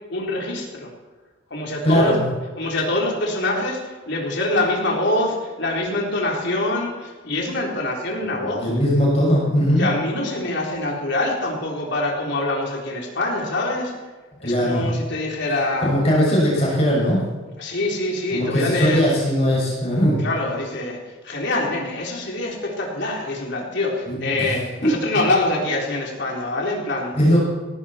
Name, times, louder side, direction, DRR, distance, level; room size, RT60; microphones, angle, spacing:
voice 1, 0.1-0.9 1.5-2.2 2.6-8.6 9.8-13.9 14.4-15.9 17.6-19.1 20.2-21.0 21.2-27.1, left 2 dB, 55° left, -1 dB, 3.9 m, -24 dB
voice 2, 1.8-2.2 8.4-9.9 14.4-14.9 15.8-17.2 18.3-20.2 24.1-24.5 24.8-24.9 27.1-27.4, equal, 30° left, -4 dB, 6.6 m, -19 dB
17.5 x 15.5 x 4.4 m, 1.3 s
head